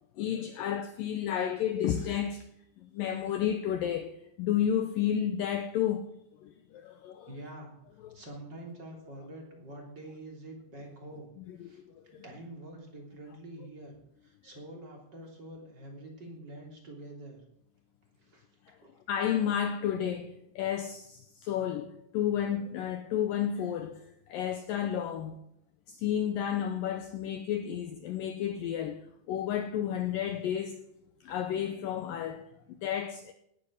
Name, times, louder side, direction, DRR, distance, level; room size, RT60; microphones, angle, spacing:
voice 1, 0.2-2.5 2.8-6.1 6.4-7.3 8.0-8.2 11.4-12.2 18.7-18.8 19.1-25.4 25.9-30.8 31.2-33.3, left 9 dB, 85° left, 2.0 m, -32 dB
voice 2, 7.3-11.3 11.6-13.9 14.2-17.4 18.1-18.5 18.8-18.9, right 1 dB, 25° right, 3.3 m, -46 dB
18.0 x 9.9 x 6.5 m
omnidirectional pair, 5.0 m